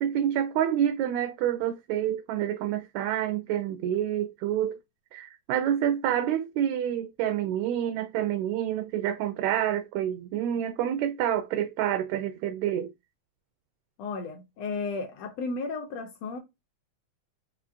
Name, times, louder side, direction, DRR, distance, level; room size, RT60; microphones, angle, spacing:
voice 1, 0.0-4.8 5.1-12.9, right 10 dB, 80° right, 1.7 m, -28 dB
voice 2, 14.0-16.4, left 4 dB, 70° left, 1.7 m, -34 dB
5.6 x 2.5 x 2.5 m
omnidirectional pair, 3.3 m